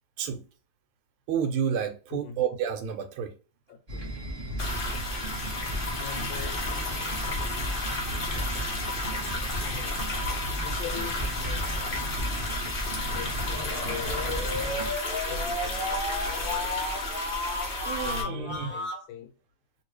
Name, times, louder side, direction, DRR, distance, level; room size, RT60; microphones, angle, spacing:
voice 1, 1.3-3.3 17.9-18.8, right 8 dB, 85° right, 1.5 m, -30 dB
voice 2, 3.7-4.0 6.0-7.3 9.4-10.1 10.6-12.1 13.1-14.4 15.3-16.0 16.4-16.8 18.0-19.3, left 7 dB, 75° left, 1.3 m, -42 dB
sound 1, 3.9-14.9, right 1 dB, 35° right, 0.6 m, -35 dB
sound 2, 4.6-18.2, left 2 dB, 50° left, 0.6 m, -32 dB
sound 3, 14.0-19.0, left 1 dB, 10° left, 0.8 m, -33 dB
3.0 x 2.9 x 3.0 m
omnidirectional pair, 2.3 m